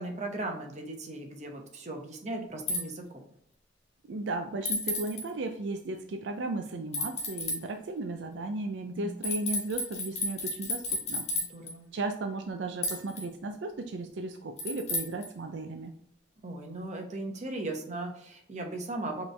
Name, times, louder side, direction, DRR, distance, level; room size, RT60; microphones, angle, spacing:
voice 1, 0.0-3.2 8.8-9.2 11.3-11.8 16.4-19.3, right 2 dB, 35° right, 2 dB, 0.9 m, -37 dB
sound 1, 2.7-2.8 4.7-5.2 6.9-7.6 9.2-11.7 12.8-13.3 14.6-15.3, left 2 dB, 35° left, 1.6 m, -32 dB
voice 2, 4.1-11.3 11.9-15.9, right 2 dB, 70° right, 5 dB, 0.4 m, -35 dB
5.1 x 3.2 x 3.3 m, 0.71 s
head